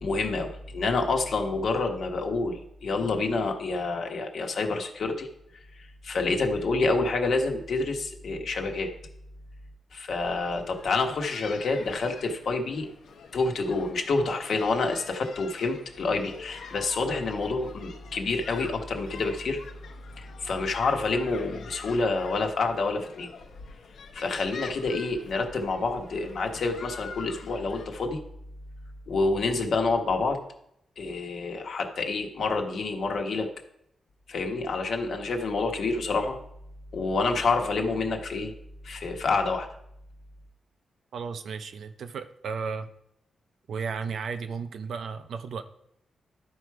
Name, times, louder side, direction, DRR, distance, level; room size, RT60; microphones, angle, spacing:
voice 1, 0.0-5.3 5.8-8.9 9.9-12.9 13.3-19.6 20.2-23.3 24.1-28.2 29.1-30.4 31.0-33.5 34.3-36.4 36.9-38.5 38.8-39.7, left 3 dB, 55° left, 3 dB, 1.2 m, -28 dB
sound 1, 10.2-27.9, left 5 dB, 75° left, 0.9 m, -46 dB
voice 2, 41.1-42.9 43.7-45.6, right 5 dB, 65° right, 10 dB, 0.6 m, -34 dB
11.5 x 4.8 x 4.7 m, 0.77 s
wide cardioid pair, 160°, 0 cm